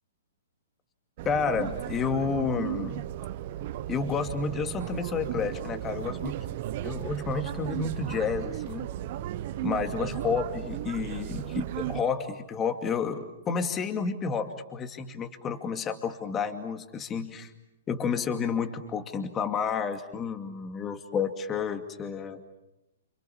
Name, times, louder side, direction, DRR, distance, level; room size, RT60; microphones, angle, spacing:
sound 1, 1.2-12.0, right 13 dB, 45° right, 1.1 m, -35 dB
voice 1, 1.3-3.0 3.9-6.4 6.8-8.9 9.6-17.5 17.9-22.4, left 5 dB, 20° left, 7 dB, 2.4 m, -30 dB
29.5 x 28.5 x 7.2 m, 0.93 s
figure-of-eight pair, 120°, 0 cm